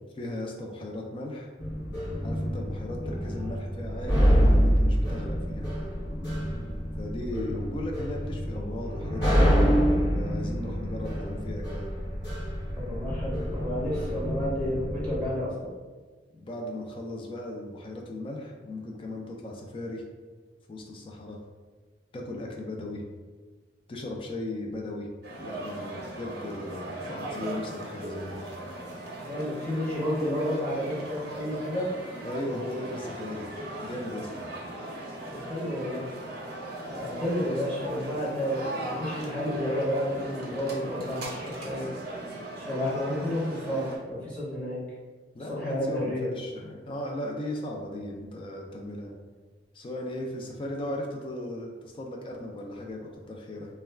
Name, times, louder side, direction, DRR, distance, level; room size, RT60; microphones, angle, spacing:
voice 1, 0.2-1.5 2.2-5.7 7.0-9.7 10.1-11.9 16.3-20.0 20.7-21.4 22.1-23.1 23.9-25.1 25.4-28.4 32.2-33.5 33.8-34.3 45.3-49.1 49.7-53.7, left 1 dB, 30° left, 0 dB, 0.3 m, -37 dB
sound 1, 1.6-15.3, equal, 80° left, 0.9 m, -27 dB
voice 2, 12.8-15.7 27.0-27.2 29.2-31.9 33.6-33.8 35.3-36.1 36.8-41.9 42.6-44.8 45.5-46.3, equal, 5° left, -9 dB, 0.7 m, -31 dB
sound 2, 25.2-44.0, right 1 dB, 60° right, 0.6 m, -38 dB
2.2 x 2.2 x 3.3 m, 1.4 s
head